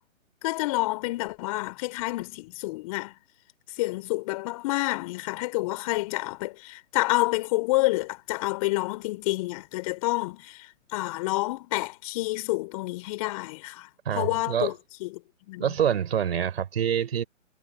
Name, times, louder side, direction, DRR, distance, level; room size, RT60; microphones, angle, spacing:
voice 1, 0.4-3.1 3.8-13.9 14.1-15.2 15.5-15.8, left 21 dB, 25° left, 3.3 m, -29 dB
voice 2, 14.1-14.7 15.6-17.2, right 8 dB, 50° right, 4.3 m, -26 dB
figure-of-eight pair, 140°, 40 cm